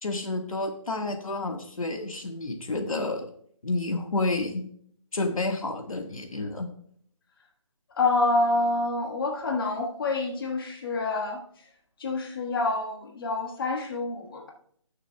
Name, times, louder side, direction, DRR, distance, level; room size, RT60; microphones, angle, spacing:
voice 1, 0.0-3.3 3.6-4.7 5.1-6.7, left 2 dB, 85° left, 5 dB, 1.5 m, -30 dB
voice 2, 8.0-11.4 12.0-14.5, left 2 dB, 40° left, 1 dB, 1.5 m, -27 dB
19.0 x 6.5 x 2.3 m, 0.64 s
hypercardioid pair, 165°, 17 cm